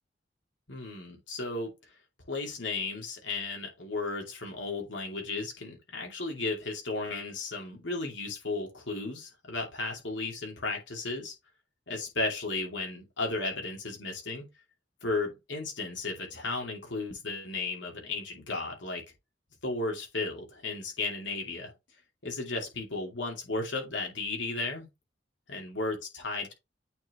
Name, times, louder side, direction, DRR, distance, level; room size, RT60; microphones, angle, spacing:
voice 1, 0.7-1.7 2.3-11.3 11.9-14.5 15.0-19.0 19.6-21.7 22.2-24.9 25.5-26.5, left 3 dB, 90° left, 2.7 m, -34 dB
8.7 x 4.1 x 3.1 m
head